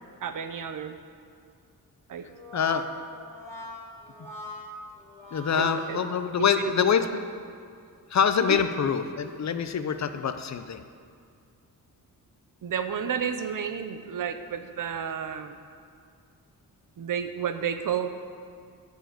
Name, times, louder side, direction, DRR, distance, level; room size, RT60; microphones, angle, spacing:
voice 1, 0.2-1.0 2.1-2.3 5.6-6.0 6.4-6.7 8.5-8.6 12.6-15.6 17.0-18.1, right 8 dB, 65° right, 9 dB, 0.7 m, -31 dB
Brass instrument, 2.2-6.8, equal, 10° left, 2.3 m, -42 dB
voice 2, 2.5-2.8 5.3-7.2 8.1-10.8, left 7 dB, 50° left, 9 dB, 0.6 m, -25 dB
7.7 x 7.2 x 8.3 m, 2.3 s
wide cardioid pair, 150°, 35 cm